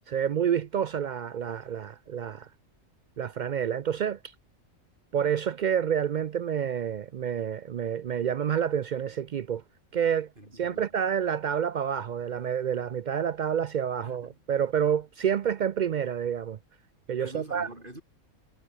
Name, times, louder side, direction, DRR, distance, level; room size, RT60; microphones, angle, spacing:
voice 1, 0.1-2.5 3.2-4.2 5.1-9.6 9.9-10.3 10.6-16.6 17.1-17.7, right 8 dB, 90° right, 0.4 m, -28 dB
voice 2, 10.4-11.0 14.0-14.4 17.2-18.0, right 1 dB, 35° right, 7.8 m, -45 dB
omnidirectional pair, 1.4 m